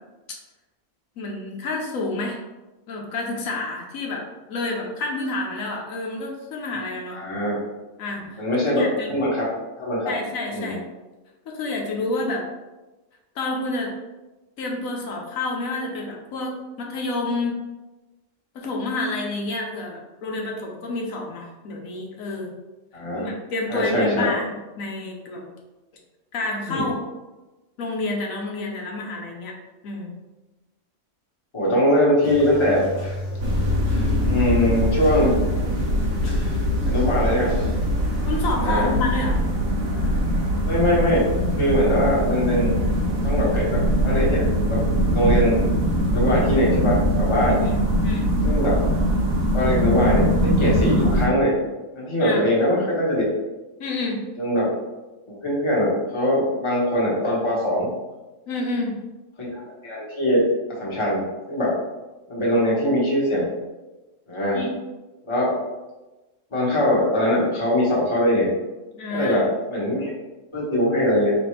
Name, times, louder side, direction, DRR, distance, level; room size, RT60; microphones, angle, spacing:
voice 1, 1.2-2.4 2.9-7.2 8.0-8.4 8.7-9.1 10.0-10.8 11.5-12.4 13.3-13.9 14.6-17.6 18.5-22.6 23.1-25.5 26.3-27.0 27.8-29.5 29.8-30.1 38.3-39.4 47.6-48.3 52.2-52.4 53.8-54.2 58.5-58.9 64.5-64.8 68.9-69.5, left 2 dB, 85° left, -1 dB, 1.2 m, -29 dB
voice 2, 7.1-7.6 8.4-9.4 9.8-10.1 10.5-10.7 22.9-23.3 23.7-24.3 26.7-26.8 31.5-32.8 34.2-35.3 36.8-37.5 38.6-38.9 40.6-41.2 41.6-42.7 43.2-44.8 45.1-45.6 46.1-47.6 48.4-48.7 49.5-51.5 52.0-53.3 54.4-54.7 55.3-57.9 59.4-59.5 59.8-60.4 60.8-61.2 61.5-61.7 62.3-63.5 64.3-64.6 65.3-65.5 66.5-68.5 69.1-69.4 69.7-70.1 70.5-71.3, equal, 25° left, -6 dB, 1.2 m, -21 dB
sound 1, 32.2-38.6, left 1 dB, 60° left, 1.1 m, -33 dB
sound 2, 33.4-51.3, equal, 90° right, 1.3 m, -22 dB
4.3 x 3.2 x 3.2 m, 1.1 s
omnidirectional pair, 1.4 m